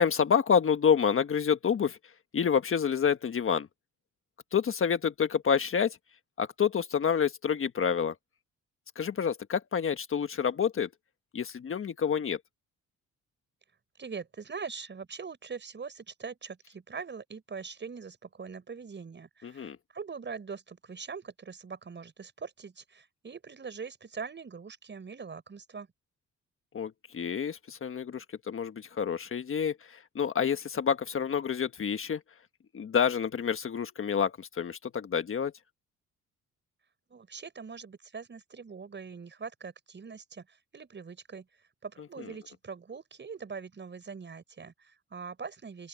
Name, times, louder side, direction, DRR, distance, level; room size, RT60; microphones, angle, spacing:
voice 1, 0.0-2.0 2.3-3.7 4.5-6.0 6.4-8.1 8.9-10.9 11.3-12.4 19.4-19.8 26.7-32.2 32.7-35.5 42.2-42.3, left 7 dB, 45° left, 1.4 m, -28 dB
voice 2, 14.0-25.9 37.1-41.5 41.8-45.9, right 5 dB, 35° right, 6.5 m, -42 dB
open air
cardioid pair, 90°, 30 cm